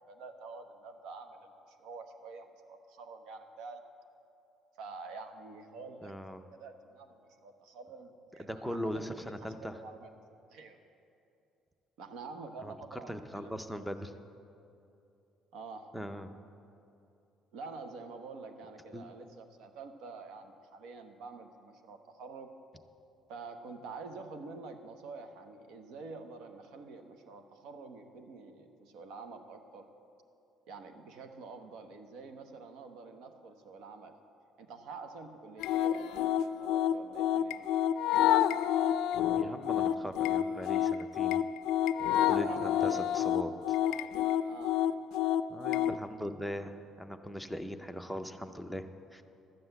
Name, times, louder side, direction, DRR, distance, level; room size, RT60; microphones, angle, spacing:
voice 1, 0.1-3.8 4.8-6.1 6.5-8.9 9.5-10.1 10.5-10.8 12.0-13.6 15.5-15.9 17.5-22.5 23.3-29.9 30.7-34.2 34.6-37.7 42.3-43.1 44.5-44.8, right 4 dB, 80° right, 7 dB, 1.0 m, -47 dB
voice 2, 6.0-6.4 8.4-9.8 12.6-14.1 15.9-16.4 18.9-19.0 39.4-41.4 42.1-43.8 45.5-49.2, equal, ahead, 9 dB, 0.5 m, -40 dB
sound 1, 35.6-46.0, left 11 dB, 80° left, 0.3 m, -29 dB
12.0 x 7.7 x 7.9 m, 2.7 s
cardioid pair, 175°, 0 cm